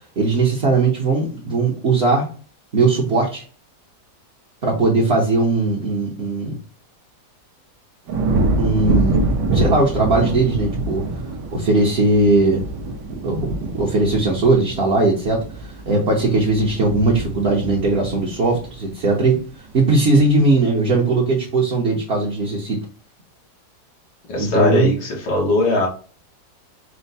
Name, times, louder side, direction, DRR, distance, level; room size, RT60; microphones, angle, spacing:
voice 1, 0.2-2.3 2.7-3.4 4.6-6.5 8.6-9.2 9.5-11.0 11.5-12.6 13.2-13.5 13.7-15.4 15.9-19.4 19.7-22.8 24.4-24.9, right 3 dB, 45° right, -3 dB, 1.0 m, -18 dB
sound 1, 8.1-19.4 19.8-20.3, right 2 dB, 80° right, 1.3 m, -25 dB
voice 2, 24.3-25.9, left 2 dB, 90° left, -2 dB, 1.8 m, -19 dB
4.5 x 2.1 x 4.0 m, 0.39 s
omnidirectional pair, 1.8 m